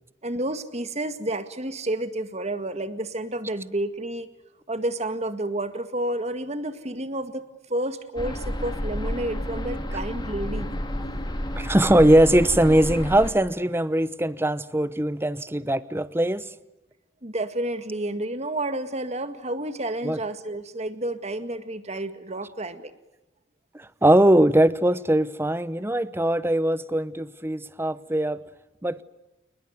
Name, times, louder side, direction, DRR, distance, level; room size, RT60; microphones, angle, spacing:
voice 1, 0.2-4.3 4.7-10.7 17.2-22.9, right 1 dB, 35° right, 1.9 m, -30 dB
sound 1, 8.2-13.3, equal, 25° left, 2.9 m, -30 dB
voice 2, 11.6-16.5 20.0-20.2 23.8-28.4 28.8-29.0, right 1 dB, 10° right, 0.9 m, -21 dB
29.0 x 20.5 x 9.5 m
head